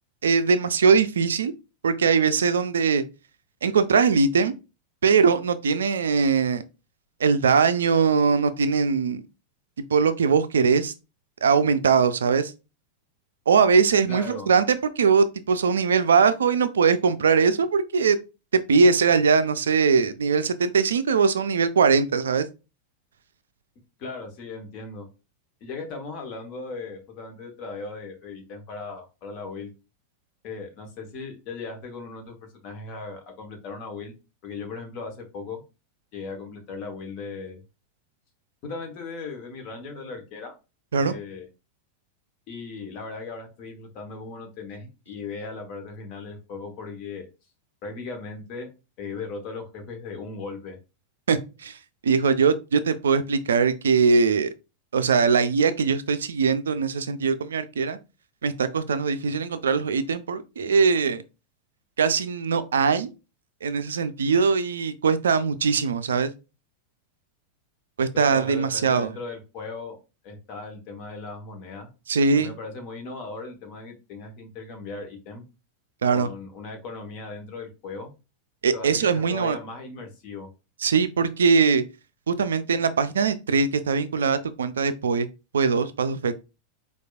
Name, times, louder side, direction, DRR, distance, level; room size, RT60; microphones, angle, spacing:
voice 1, 0.2-1.5 1.8-3.0 3.6-4.5 5.0-6.6 7.2-9.2 9.9-10.9 11.4-12.5 13.5-18.2 18.7-22.5 40.9-41.1 51.3-51.8 52.0-54.5 54.9-58.0 58.4-61.2 62.0-63.1 63.6-66.3 68.0-69.1 72.1-72.5 76.0-76.3 78.6-79.6 80.8-81.8 82.3-85.3 85.5-86.3, right 5 dB, 65° right, 0.3 m, -21 dB
voice 2, 14.1-14.5 24.0-25.1 25.6-29.7 30.4-32.3 32.6-34.1 34.4-35.6 36.1-37.6 38.6-40.5 40.9-41.5 42.5-47.3 47.8-48.7 49.0-50.8 68.1-70.0 70.2-71.9 72.3-75.4 76.1-78.1 78.7-80.5, left 4 dB, 40° left, 1.1 m, -37 dB
4.5 x 2.3 x 2.3 m
figure-of-eight pair, 90°, 0 cm